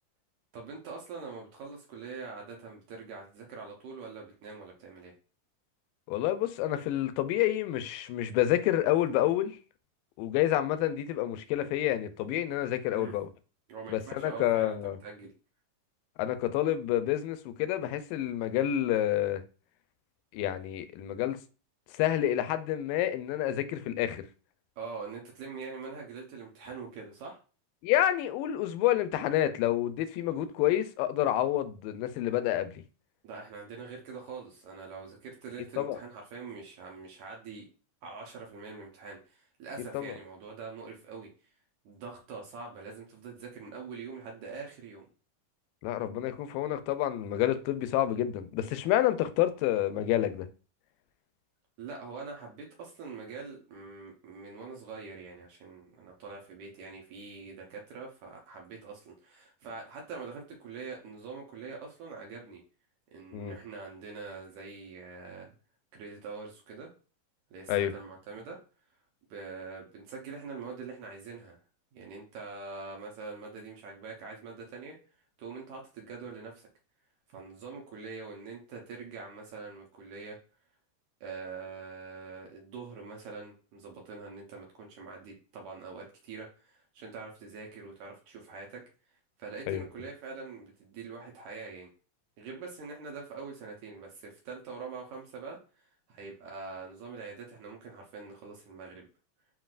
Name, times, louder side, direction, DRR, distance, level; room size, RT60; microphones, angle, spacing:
voice 1, 0.5-5.1 12.9-13.1 13.7-15.3 24.8-27.4 33.2-37.7 38.0-41.3 41.9-45.1 51.8-62.6 63.1-65.5 65.9-66.9 67.5-68.6 69.3-71.6 71.9-75.0 75.4-76.7 77.3-80.4 81.2-88.8 89.4-91.9 92.4-99.1, right 4 dB, 70° right, 2.0 m, -44 dB
voice 2, 6.1-9.5 10.2-13.3 13.9-15.0 16.2-19.4 20.3-21.4 22.0-24.2 27.8-32.8 35.8-36.0 39.9-40.1 45.8-50.5 63.3-63.6 67.7-67.9 89.7-89.8, left 12 dB, 85° left, 2.2 m, -28 dB
7.5 x 2.7 x 2.4 m
omnidirectional pair, 3.9 m